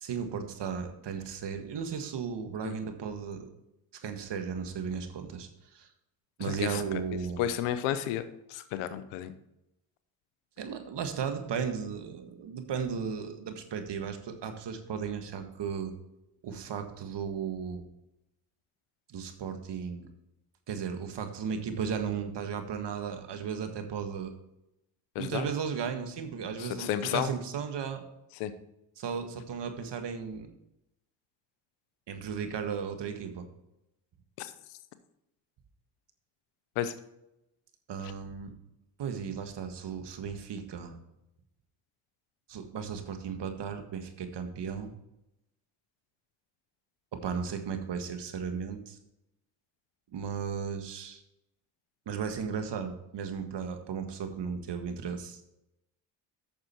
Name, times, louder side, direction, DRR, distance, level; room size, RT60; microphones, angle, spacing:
voice 1, 0.0-3.5 4.0-5.9 6.4-7.5 10.6-15.9 16.4-17.9 19.1-20.1 20.7-24.3 25.2-28.1 29.0-30.5 32.1-33.5 37.9-38.5 39.0-41.0 42.5-44.9 47.1-49.0 50.1-51.2 52.0-55.5, right 6 dB, 55° right, 7 dB, 1.6 m, -35 dB
voice 2, 6.4-7.0 7.4-8.2 8.5-9.3 25.1-25.5 26.6-27.3 28.4-28.5 34.4-34.5 36.8-36.9, left 11 dB, 85° left, 12 dB, 0.9 m, -32 dB
8.8 x 6.7 x 4.4 m, 0.86 s
supercardioid pair, 55°, 49 cm